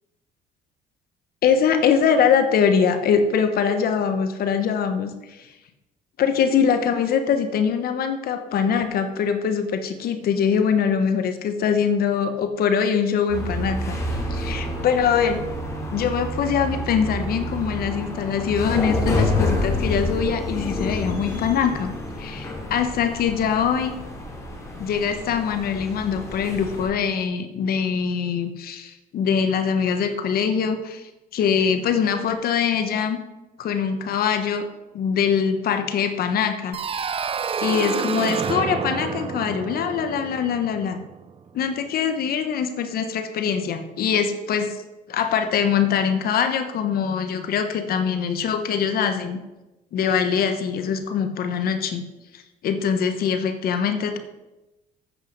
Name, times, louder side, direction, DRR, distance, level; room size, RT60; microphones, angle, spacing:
voice 1, 1.4-5.5 6.2-14.0 14.3-15.4 15.9-21.9 22.2-23.9 24.8-33.2 33.6-34.6 34.9-37.2 37.6-41.0 41.5-44.8 45.1-49.4 49.9-52.0 52.3-54.2, left 7 dB, 65° left, 8 dB, 1.1 m, -23 dB
sound 1, 13.3-26.9, left 1 dB, 15° left, 2.8 m, -28 dB
sound 2, 36.7-41.4, right 7 dB, 35° right, 0.5 m, -29 dB
9.0 x 7.8 x 5.3 m, 1.0 s
cardioid pair, 110°, 17 cm